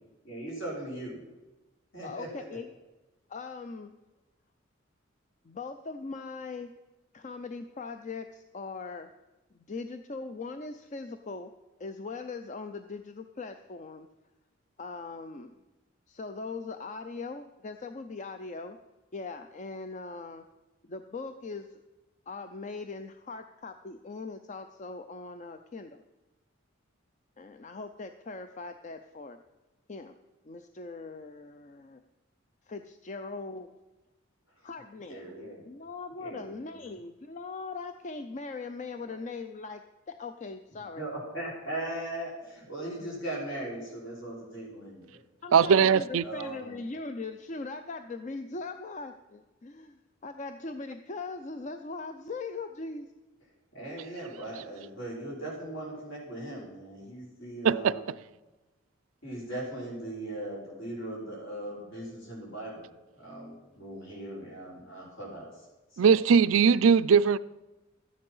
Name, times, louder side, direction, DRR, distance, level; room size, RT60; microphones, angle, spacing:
voice 1, 0.2-1.2 1.9-2.3 35.0-35.6 36.2-36.6 39.0-39.1 41.0-45.2 45.6-46.7 53.7-58.1 59.2-62.9 63.2-65.6 66.0-66.2, right 1 dB, 65° left, 5.5 m, -39 dB
voice 2, 2.0-2.7 3.3-3.9 5.4-6.7 7.1-9.1 9.5-11.5 11.8-14.1 14.8-15.5 16.1-18.8 19.1-20.4 20.8-21.8 22.3-26.0 27.4-29.4 29.9-30.2 30.5-32.0 32.7-33.7 34.6-35.2 35.6-41.0 45.4-53.1, left 3 dB, 35° left, 0.5 m, -40 dB
voice 3, 45.5-46.2 57.6-57.9 66.0-67.4, right 6 dB, 80° right, 0.4 m, -20 dB
13.0 x 9.5 x 5.5 m
head